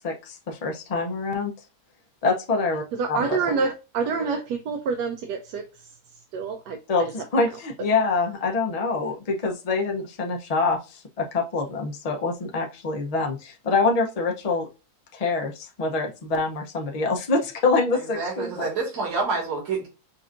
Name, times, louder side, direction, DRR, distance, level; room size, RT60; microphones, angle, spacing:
voice 1, 0.0-1.5 2.2-3.4 6.9-14.7 15.1-18.7, left 3 dB, 60° left, 0.4 m, -25 dB
voice 2, 3.0-5.7 6.3-6.8, right 5 dB, 90° right, 1.2 m, -27 dB
voice 3, 17.9-19.9, right 4 dB, 50° right, 2.1 m, -28 dB
5.4 x 2.5 x 2.4 m
omnidirectional pair, 1.7 m